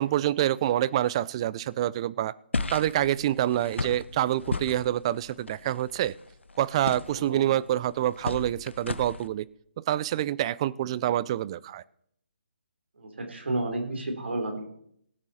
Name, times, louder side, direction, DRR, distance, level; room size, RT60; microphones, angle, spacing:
voice 1, 0.0-2.4 2.7-6.1 6.6-9.5 9.8-11.8, right 12 dB, 30° right, 20 dB, 0.4 m, -27 dB
sound 1, 2.5-9.3, left 3 dB, 90° left, 0.9 m, -36 dB
voice 2, 7.1-7.4 13.0-14.6, right 2 dB, 75° right, 4 dB, 3.4 m, -31 dB
17.5 x 8.8 x 4.2 m, 0.71 s
figure-of-eight pair, 150°, 6 cm